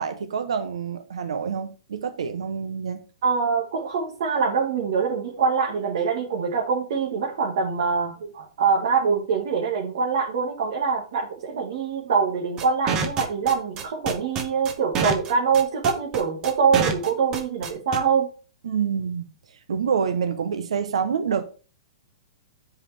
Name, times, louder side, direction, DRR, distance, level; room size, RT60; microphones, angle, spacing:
voice 1, 0.0-3.0 18.6-19.3 19.7-21.4, right 6 dB, 80° right, 1.0 m, -27 dB
voice 2, 3.2-18.3, right 5 dB, 50° right, 2.0 m, -24 dB
sound 1, 12.6-18.0, right 5 dB, 15° right, 0.8 m, -26 dB
10.0 x 4.8 x 3.5 m
hypercardioid pair, 175°, 3 cm